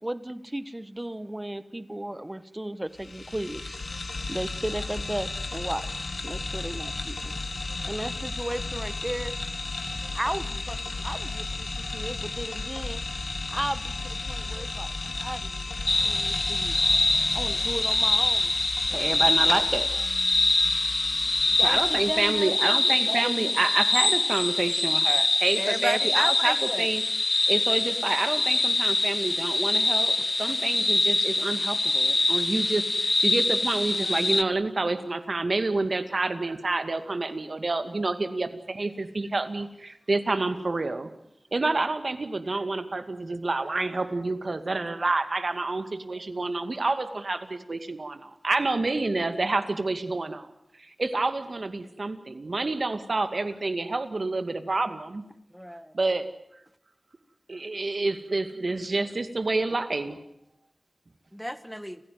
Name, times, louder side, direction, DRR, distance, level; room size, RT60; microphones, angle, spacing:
voice 1, 0.0-3.8 4.3-7.3 7.8-9.4 10.1-13.0 13.5-16.8 17.3-18.5 21.1-23.6, right 1 dB, 20° right, 15 dB, 1.4 m, -35 dB
sound 1, 2.9-22.6, left 3 dB, 70° left, 2.8 m, -34 dB
sound 2, 15.9-34.4, left 2 dB, 45° left, 1.1 m, -24 dB
voice 2, 17.1-17.4 18.9-20.1 21.6-27.0 27.5-41.1 41.5-50.5 50.8-55.2 55.9-56.3 57.5-60.2, right 3 dB, 60° right, 10 dB, 2.3 m, -28 dB
voice 3, 25.6-26.9 31.2-31.3 55.5-55.9 61.3-62.0, equal, ahead, 13 dB, 1.6 m, -32 dB
29.5 x 16.0 x 9.6 m, 0.81 s
wide cardioid pair, 80°, 0 cm